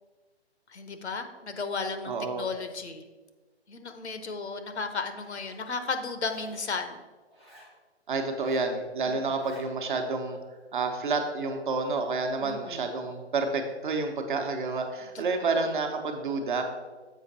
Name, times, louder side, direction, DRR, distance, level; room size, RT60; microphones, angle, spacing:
voice 1, 0.7-3.0 3.7-7.0 9.0-9.2 12.4-12.9 15.1-15.7, left 4 dB, 70° left, 8 dB, 0.9 m, -34 dB
voice 2, 2.0-2.5 8.1-10.4 10.7-16.6, right 3 dB, 45° right, 4 dB, 1.0 m, -29 dB
Zipper (clothing), 5.0-5.6 6.2-6.7 7.3-7.7 8.3-8.7 9.2-9.7, equal, ahead, 0.4 m, -53 dB
7.3 x 5.1 x 4.1 m, 1.3 s
figure-of-eight pair, 140°, 34 cm